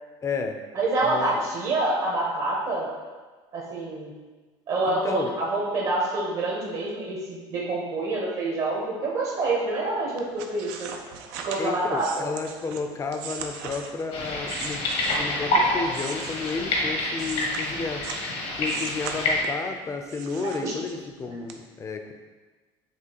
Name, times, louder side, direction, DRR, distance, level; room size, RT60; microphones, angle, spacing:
voice 1, 0.2-0.6 1.0-1.4 4.9-5.3 11.6-14.8 15.1-18.0 18.6-22.1, left 4 dB, 25° left, 5 dB, 0.5 m, -32 dB
voice 2, 0.7-2.9 3.5-4.1 4.7-10.9 11.4-12.3 20.6-20.7, right 2 dB, 55° right, -4 dB, 1.0 m, -27 dB
sound 1, 10.2-15.4 15.9-18.3 18.6-19.7 20.1-21.1 21.5-21.6, right 6 dB, 85° right, 0.5 m, -39 dB
sound 2, 14.1-19.4, left 1 dB, 70° left, 1.1 m, -27 dB
5.9 x 2.7 x 2.9 m, 1.3 s
supercardioid pair, 100°, 11 cm